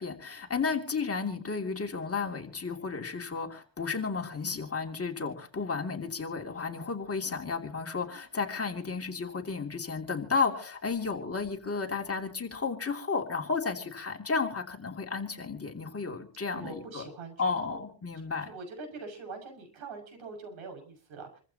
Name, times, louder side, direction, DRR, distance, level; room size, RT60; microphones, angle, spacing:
voice 1, 0.0-17.1 17.4-18.5, left 4 dB, 30° left, 3 dB, 2.9 m, -33 dB
voice 2, 16.5-17.8 18.4-21.4, right 4 dB, 75° right, 4 dB, 6.7 m, -43 dB
27.5 x 15.0 x 3.0 m, 0.39 s
cardioid pair, 100°, 48 cm